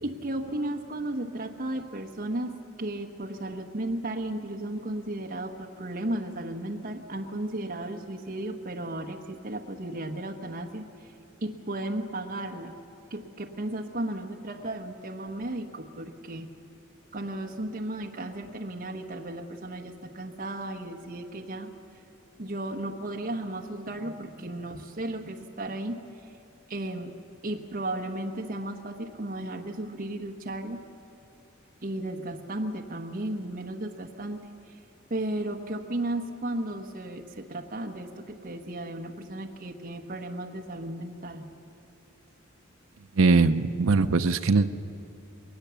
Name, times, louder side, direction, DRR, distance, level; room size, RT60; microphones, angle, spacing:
voice 1, 0.0-11.1 11.4-12.7 13.1-16.5 17.1-21.7 22.4-26.3 26.7-27.1 27.4-30.8 31.8-34.4 34.7-34.8 35.1-41.5, right 1 dB, 45° right, 2 dB, 1.1 m, -34 dB
voice 2, 43.2-44.7, right 3 dB, 70° right, 8 dB, 0.6 m, -21 dB
21.0 x 19.0 x 7.0 m, 2.9 s
head